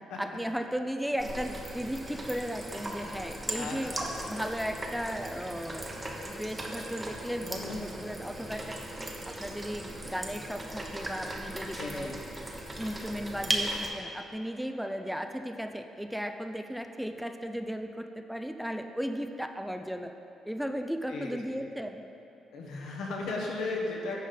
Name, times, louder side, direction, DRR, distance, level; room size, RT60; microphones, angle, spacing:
voice 1, 0.2-4.0 4.3-5.9 6.2-8.8 9.2-12.1 12.8-20.1 20.5-22.0, equal, ahead, 6 dB, 0.4 m, -35 dB
sound 1, 1.2-13.9, right 1 dB, 20° right, 0.9 m, -37 dB
voice 2, 3.5-4.2 7.4-7.9 11.7-12.1 21.1-21.7 22.5-24.3, left 3 dB, 85° left, -2 dB, 1.2 m, -36 dB
8.8 x 5.1 x 3.9 m, 2.8 s
cardioid pair, 90°, 0 cm